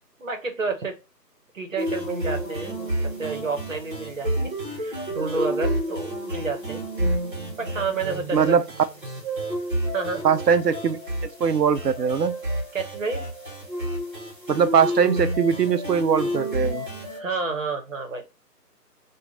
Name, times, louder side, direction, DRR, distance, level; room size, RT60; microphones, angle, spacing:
voice 1, 0.2-1.0 1.5-2.7 3.0-6.8 7.6-8.6 9.9-10.2 12.7-13.2 17.1-18.2, right 4 dB, 50° right, 1.0 m, -30 dB
sound 1, 1.8-17.2, right 1 dB, 30° right, 1.1 m, -30 dB
voice 2, 8.3-8.6 10.2-11.0 11.4-12.4 14.5-16.9, right 7 dB, 75° right, 0.6 m, -21 dB
3.1 x 2.4 x 3.7 m
figure-of-eight pair, 165°, 50 cm